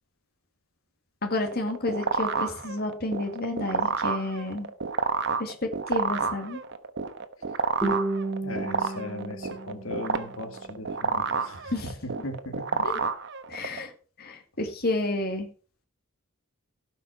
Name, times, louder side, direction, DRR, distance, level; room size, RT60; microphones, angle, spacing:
voice 1, 1.2-4.7 5.4-6.6 11.7-12.0 12.8-12.9 13.5-13.9 14.2-15.5, left 2 dB, 45° left, 4 dB, 2.1 m, -30 dB
sound 1, 1.4-13.8, right 5 dB, 55° right, 1.0 m, -29 dB
Guitar, 7.8-10.8, right 2 dB, ahead, 3.2 m, -32 dB
voice 2, 8.4-11.7 12.0-12.8, left 1 dB, 70° left, 5 dB, 2.0 m, -38 dB
17.0 x 5.7 x 4.5 m, 0.37 s
head